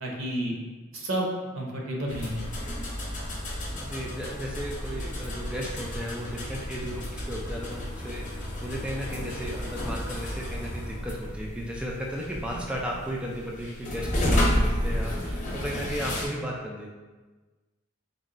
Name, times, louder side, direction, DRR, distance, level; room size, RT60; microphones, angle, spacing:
voice 1, 0.0-0.5 0.9-1.3 1.5-2.4, right 1 dB, 70° right, -1 dB, 0.8 m, -30 dB
sound 1, 2.1-16.3, equal, 40° left, 0.7 m, -31 dB
voice 2, 3.8-16.9, equal, 5° right, -2 dB, 0.3 m, -35 dB
4.0 x 2.2 x 3.7 m, 1.3 s
head